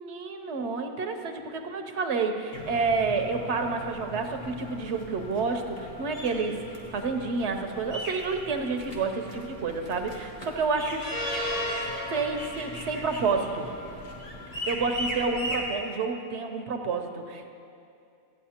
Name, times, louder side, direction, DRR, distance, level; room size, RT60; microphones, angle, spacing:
voice 1, 0.0-11.0 12.1-13.7 14.7-17.5, right 4 dB, 80° right, 6 dB, 1.0 m, -29 dB
sound 1, 2.5-15.7, equal, 35° left, 1.3 m, -37 dB
13.5 x 8.9 x 2.9 m, 2.5 s
omnidirectional pair, 1.2 m